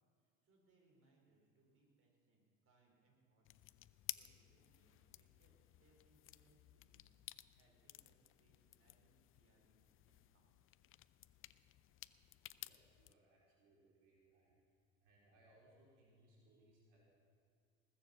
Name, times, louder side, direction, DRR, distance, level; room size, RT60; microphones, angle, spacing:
voice 1, 0.2-3.8 4.1-10.6, right 2 dB, 40° right, -1 dB, 4.9 m, -76 dB
sound 1, 3.4-13.1, left 14 dB, 35° left, 0.5 m, -55 dB
voice 2, 12.6-14.6 15.0-17.1, right 1 dB, 75° right, -4 dB, 4.3 m, -70 dB
20.0 x 7.4 x 7.2 m, 2.2 s
hypercardioid pair, 85°, 36 cm